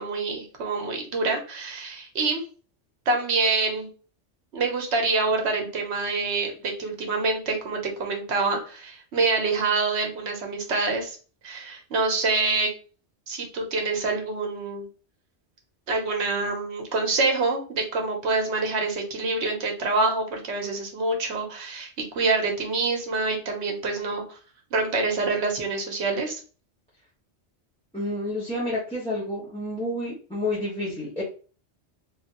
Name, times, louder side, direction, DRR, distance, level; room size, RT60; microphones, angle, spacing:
voice 1, 0.0-2.4 3.1-3.9 4.5-11.2 11.4-12.7 13.3-14.9 15.9-24.4 24.7-26.4, right 3 dB, 70° right, 3 dB, 1.2 m, -26 dB
voice 2, 27.9-31.2, left 1 dB, 5° left, -8 dB, 0.9 m, -29 dB
3.2 x 2.9 x 2.9 m, 0.38 s
omnidirectional pair, 1.2 m